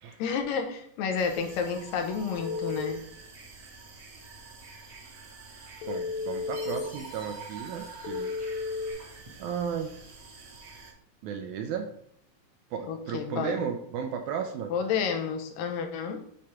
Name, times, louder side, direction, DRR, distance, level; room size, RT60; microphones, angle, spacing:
voice 1, 0.2-3.0 12.9-13.6 14.7-16.2, left 6 dB, 85° left, 6 dB, 2.4 m, -30 dB
sound 1, 1.1-10.9, right 4 dB, 55° right, 1.5 m, -47 dB
Telephone, 2.4-2.9 5.8-6.8 8.0-8.9, left 4 dB, 60° left, 2.2 m, -33 dB
voice 2, 5.9-8.3 9.4-9.9 11.2-11.9 12.7-14.7, right 7 dB, 80° right, 6 dB, 1.7 m, -34 dB
Chime, 6.5-9.0, equal, 5° right, 0.6 m, -51 dB
6.5 x 3.6 x 5.6 m, 0.68 s
omnidirectional pair, 4.0 m